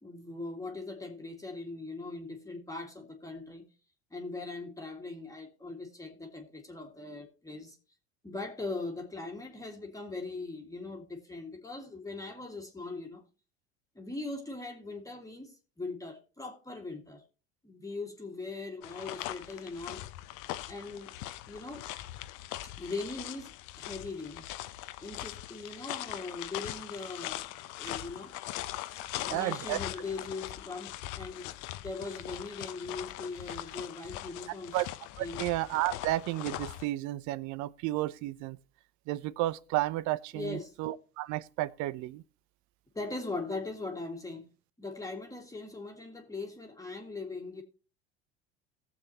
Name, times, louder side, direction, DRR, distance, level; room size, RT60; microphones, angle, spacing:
voice 1, 0.0-3.7 4.1-7.8 8.2-13.2 14.0-17.2 17.6-20.0 20.7-21.1 21.5-21.9 22.8-24.5 25.0-27.5 27.8-28.4 29.2-31.5 31.8-34.8 35.2-35.4 40.3-40.8 42.9-44.5 44.8-47.6, left 3 dB, 10° left, 2.0 m, -40 dB
sound 1, 18.8-36.9, left 15 dB, 60° left, 0.8 m, -41 dB
voice 2, 29.3-29.8 34.7-34.9 35.2-38.6 39.1-42.2, right 16 dB, 55° right, 0.6 m, -32 dB
18.5 x 7.2 x 2.9 m
hypercardioid pair, 80°, 34 cm